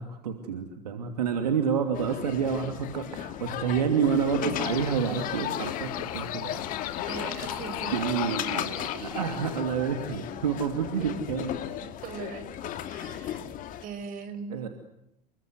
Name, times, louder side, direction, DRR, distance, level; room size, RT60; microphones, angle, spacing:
voice 1, 0.0-6.6 7.9-8.7 9.0-11.5 14.5-14.7, right 7 dB, 70° right, 6 dB, 2.8 m, -28 dB
sound 1, 1.9-13.8, left 11 dB, 40° left, 2.4 m, -36 dB
sound 2, 4.6-9.6, left 12 dB, 60° left, 1.8 m, -37 dB
voice 2, 5.3-5.6 7.0-7.9 8.3-9.1 12.0-13.4 13.8-14.6, right 6 dB, 40° right, 10 dB, 6.1 m, -40 dB
30.0 x 23.0 x 8.1 m, 0.84 s
figure-of-eight pair, 75°, 21 cm